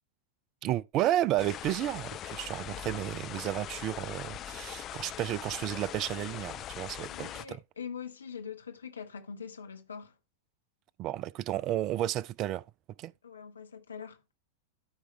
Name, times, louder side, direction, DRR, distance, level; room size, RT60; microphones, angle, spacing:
voice 1, 0.6-7.6 11.0-12.6 13.0-13.1, right 13 dB, 35° right, 0.4 m, -32 dB
sound 1, 1.4-7.5, left 11 dB, 30° left, 0.4 m, -41 dB
voice 2, 7.1-10.2 13.2-14.3, left 7 dB, 70° left, 1.2 m, -43 dB
13.0 x 4.8 x 3.1 m
figure-of-eight pair, 90°, 0 cm